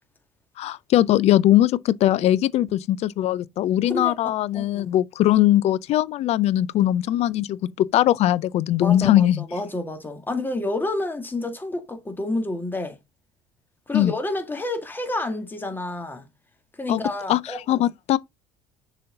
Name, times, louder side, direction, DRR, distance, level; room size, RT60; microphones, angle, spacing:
voice 1, 0.6-9.4 13.9-14.1 16.9-17.0 17.3-18.2, left 13 dB, 55° left, 0.5 m, -20 dB
voice 2, 4.5-4.9 8.8-13.0 13.9-16.3 16.8-17.8, left 2 dB, 15° left, 2.0 m, -29 dB
6.6 x 4.2 x 3.8 m
hypercardioid pair, 75°, 13 cm